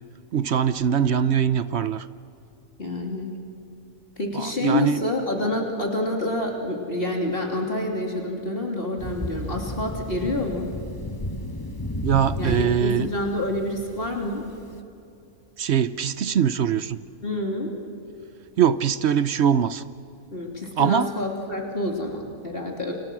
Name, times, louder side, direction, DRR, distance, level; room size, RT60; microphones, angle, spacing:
voice 1, 0.3-2.1 4.3-5.0 12.0-13.1 15.6-17.0 18.6-19.8 20.8-21.1, right 8 dB, 55° right, 14 dB, 0.9 m, -22 dB
voice 2, 2.8-3.3 4.2-10.7 12.4-14.4 17.2-17.7 20.3-22.9, left 1 dB, 40° left, 0 dB, 3.2 m, -27 dB
Thunder, 9.0-14.7, left 1 dB, 15° left, 1.2 m, -33 dB
29.5 x 26.5 x 6.2 m, 2.7 s
omnidirectional pair, 1.5 m